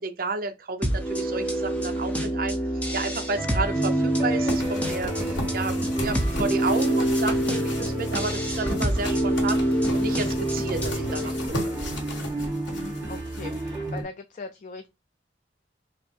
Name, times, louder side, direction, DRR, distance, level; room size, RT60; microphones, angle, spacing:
voice 1, 0.0-2.6 2.9-9.6 9.9-11.3 11.6-11.7, right 3 dB, 50° right, 0.7 m, -31 dB
sound 1, 0.8-11.5, right 1 dB, 10° left, 0.8 m, -26 dB
sound 2, 3.3-14.0, right 1 dB, 20° right, 1.3 m, -33 dB
sound 3, 4.5-14.0, left 1 dB, 85° left, 1.5 m, -35 dB
voice 2, 12.7-14.9, left 3 dB, 45° left, 0.4 m, -40 dB
5.0 x 2.1 x 4.4 m
head